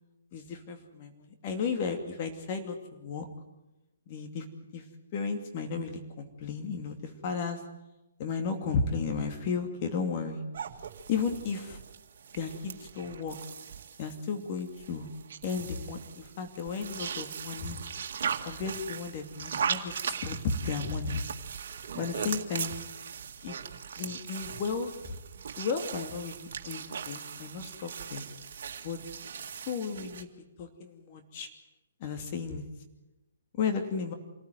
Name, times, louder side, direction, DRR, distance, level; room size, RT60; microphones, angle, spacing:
voice 1, 0.3-3.3 4.1-4.4 4.7-4.8 5.1-7.6 8.2-10.4 11.1-11.8 12.3-13.4 14.0-15.1 15.4-17.8 18.4-20.4 20.6-21.2 21.9-22.7 23.4-23.6 24.0-25.2 25.6-28.3 28.8-29.0 29.7-30.3 30.6-31.5 32.0-32.6 33.6-34.1, left 5 dB, 40° left, 5 dB, 2.6 m, -34 dB
sound 1, 10.5-30.2, right 7 dB, 60° right, 2.0 m, -39 dB
26.0 x 14.5 x 9.3 m, 1.0 s
hypercardioid pair, 140°, 0 cm